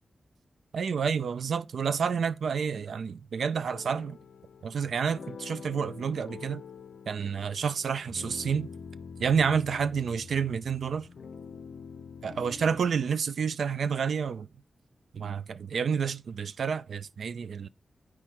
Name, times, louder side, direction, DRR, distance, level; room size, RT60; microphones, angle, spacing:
voice 1, 0.7-4.2 4.6-6.6 7.1-8.7 9.2-11.1 12.2-14.5 15.1-17.7, right 6 dB, 75° right, 0.4 m, -29 dB
sound 1, 3.7-12.9, left 5 dB, 60° left, 0.7 m, -45 dB
10.0 x 4.8 x 4.3 m
wide cardioid pair, 155°, 0 cm